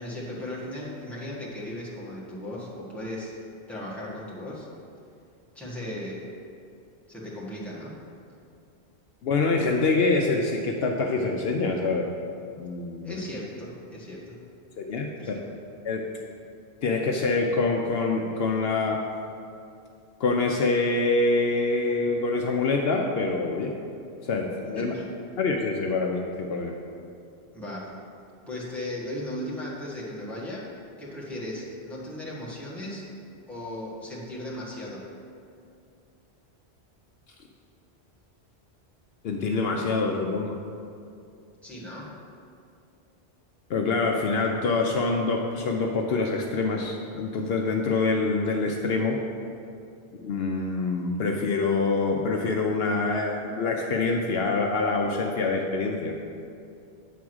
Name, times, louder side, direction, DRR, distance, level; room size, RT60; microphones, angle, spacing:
voice 1, 0.0-3.3 3.7-4.7 5.5-6.2 7.1-8.0 13.0-14.4 15.1-15.5 24.7-25.1 27.5-27.9 28.5-30.7 31.0-33.1 33.5-35.0 41.6-42.2, left 1 dB, ahead, -7 dB, 1.6 m, -36 dB
voice 2, 9.2-12.1 12.6-13.2 14.8-15.3 15.8-16.0 16.8-19.0 20.2-23.7 24.2-24.9 25.4-26.8 39.2-40.6 43.7-49.2 50.2-56.1, left 3 dB, 70° left, 1 dB, 0.8 m, -25 dB
9.2 x 3.6 x 6.2 m, 2.5 s
omnidirectional pair, 1.1 m